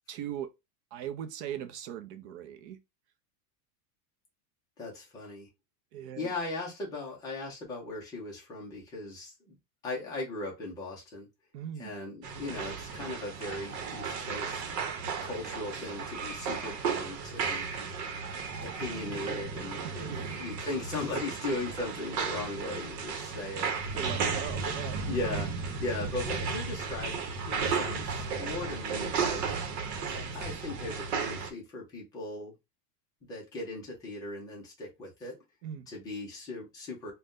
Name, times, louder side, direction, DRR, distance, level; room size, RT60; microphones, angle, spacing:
voice 1, 0.1-0.5 0.9-2.8 5.9-6.3 11.5-11.9 19.8-20.3 23.9-25.0 35.6-35.9, right 10 dB, 45° right, 0.5 m, -39 dB
voice 2, 4.8-5.5 6.2-9.6 9.8-11.3 11.8-14.6 15.2-17.7 18.6-20.1 20.4-24.3 25.1-25.5 25.8-29.4 30.1-32.5 33.3-35.4 35.9-37.1, left 2 dB, 10° left, 0.3 m, -38 dB
sound 1, 12.2-31.5, right 5 dB, 80° right, 0.9 m, -34 dB
2.5 x 2.2 x 3.4 m
supercardioid pair, 155°, 49 cm